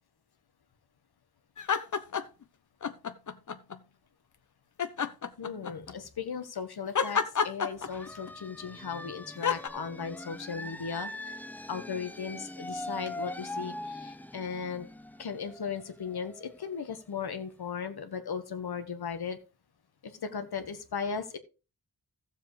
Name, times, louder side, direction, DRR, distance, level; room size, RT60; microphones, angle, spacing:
sound 1, 1.6-2.4 2.8-3.8 4.8-5.9 6.9-8.3 9.4-9.7, left 6 dB, 50° left, 0.9 m, -29 dB
voice 1, 5.4-11.4 11.7-14.9 15.2-19.4 20.0-21.4, left 6 dB, 80° left, 8 dB, 1.4 m, -37 dB
sound 2, 7.8-17.3, left 1 dB, 5° left, 0.4 m, -42 dB
15.0 x 7.4 x 3.2 m, 0.32 s
wide cardioid pair, 95°, 37 cm